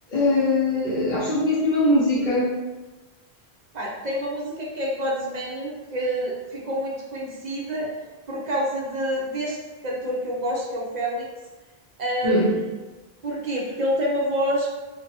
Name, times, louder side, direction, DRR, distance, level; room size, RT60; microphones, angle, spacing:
voice 1, 0.1-2.5 12.2-12.5, left 1 dB, 55° left, -9 dB, 0.7 m, -21 dB
voice 2, 3.7-7.9 8.3-9.6 9.8-11.3 12.0-12.7 13.2-14.7, equal, 50° right, -4 dB, 0.6 m, -27 dB
2.7 x 2.2 x 2.6 m, 1.2 s
omnidirectional pair, 1.1 m